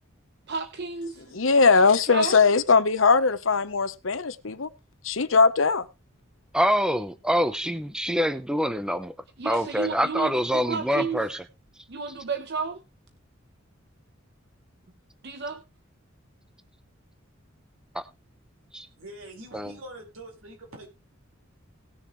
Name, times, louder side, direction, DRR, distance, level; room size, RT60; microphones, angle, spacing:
voice 1, 0.5-2.5 9.4-11.4 11.9-12.8 15.2-15.6, right 5 dB, 55° right, 0.9 m, -32 dB
voice 2, 1.3-4.7 5.0-5.9, left 4 dB, 70° left, 0.9 m, -20 dB
voice 3, 6.5-9.1 9.4-11.4 17.9-18.0 18.7-18.9 19.5-19.7, equal, 5° right, 0.8 m, -25 dB
voice 4, 19.0-20.9, right 1 dB, 85° right, 4.6 m, -44 dB
19.0 x 6.8 x 3.1 m
head